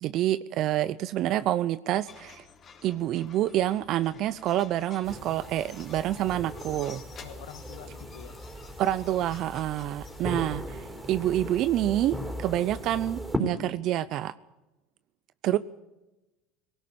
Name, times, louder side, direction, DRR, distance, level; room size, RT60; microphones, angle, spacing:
voice 1, 0.0-2.4 2.8-7.0 8.8-14.3 15.4-15.6, right 13 dB, 55° right, 16 dB, 0.6 m, -27 dB
sound 1, 2.1-13.7, left 5 dB, 35° left, 3.8 m, -53 dB
sound 2, 5.0-13.4, equal, 10° right, 4.4 m, -38 dB
voice 2, 7.2-8.4 15.4-15.6, left 11 dB, 80° left, 10 dB, 1.8 m, -46 dB
20.0 x 17.5 x 8.6 m, 1.0 s
supercardioid pair, 100°, 0 cm